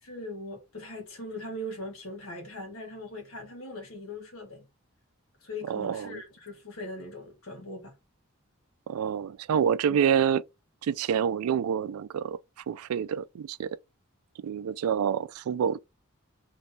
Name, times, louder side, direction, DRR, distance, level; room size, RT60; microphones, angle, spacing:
voice 1, 0.0-4.6 5.4-7.9 9.9-10.0, left 1 dB, 75° left, 1.5 m, -40 dB
voice 2, 5.7-6.2 8.9-10.4 10.8-12.4 12.7-13.8 14.4-15.8, right 8 dB, 85° right, 0.3 m, -27 dB
5.3 x 3.1 x 2.7 m
head